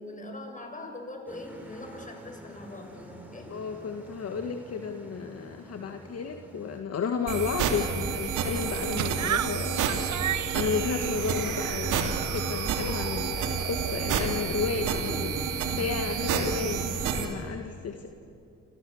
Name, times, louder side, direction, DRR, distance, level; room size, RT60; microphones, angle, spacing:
voice 1, 0.0-3.5, left 1 dB, 25° left, 3 dB, 6.7 m, -42 dB
sound 1, 1.3-6.8, equal, 5° right, 6.3 m, -48 dB
voice 2, 3.5-9.8 10.5-12.0 12.3-15.4 15.7-18.1, left 5 dB, 55° left, 5 dB, 2.0 m, -32 dB
sound 2, 7.3-17.3, right 6 dB, 90° right, 3.1 m, -29 dB
sound 3, 8.4-13.2, right 10 dB, 65° right, 1.4 m, -35 dB
28.5 x 27.0 x 7.3 m, 2.6 s
cardioid pair, 90°, 30 cm